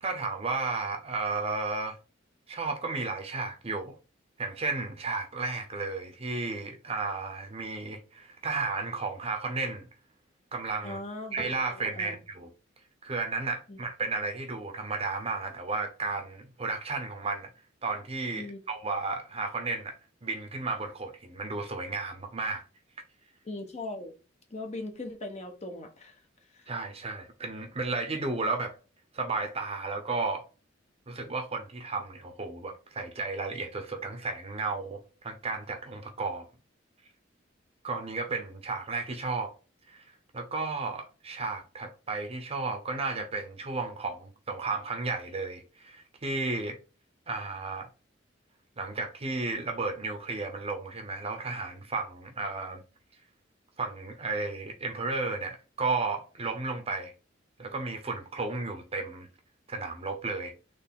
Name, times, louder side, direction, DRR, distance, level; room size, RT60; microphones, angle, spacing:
voice 1, 0.0-2.0 2.5-4.0 4.4-9.9 10.5-11.0 11.3-12.5 13.0-17.5 17.8-22.6 26.7-28.7 29.1-30.4 31.1-36.5 37.8-39.5 39.9-40.0 40.3-46.8 47.3-47.9 48.8-52.8 53.8-57.1 57.6-59.3 59.7-60.5, right 3 dB, 30° right, 0.8 m, -33 dB
voice 2, 10.8-11.5 11.7-12.2 13.7-13.8 18.3-18.6 23.4-24.1 24.5-26.2 26.5-26.7, left 2 dB, 35° left, 1.0 m, -39 dB
4.2 x 3.3 x 3.7 m
head